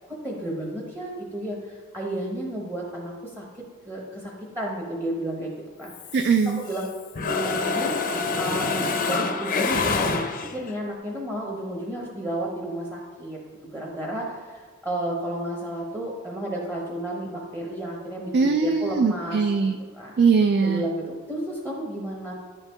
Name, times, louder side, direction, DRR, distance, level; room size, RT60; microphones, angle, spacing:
voice 1, 0.0-3.5 3.8-5.5 5.8-5.9 6.7-6.9 7.3-19.4 19.9-20.1 20.6-22.3, right 1 dB, 15° right, -3 dB, 0.9 m, -32 dB
Mechanisms, 5.9-6.9 7.2-10.7, left 4 dB, 40° left, 0.5 m, -26 dB
voice 2, 6.1-6.6 18.3-19.7 20.2-20.8, right 5 dB, 50° right, 6 dB, 0.3 m, -21 dB
10.5 x 4.6 x 3.4 m, 1.5 s
head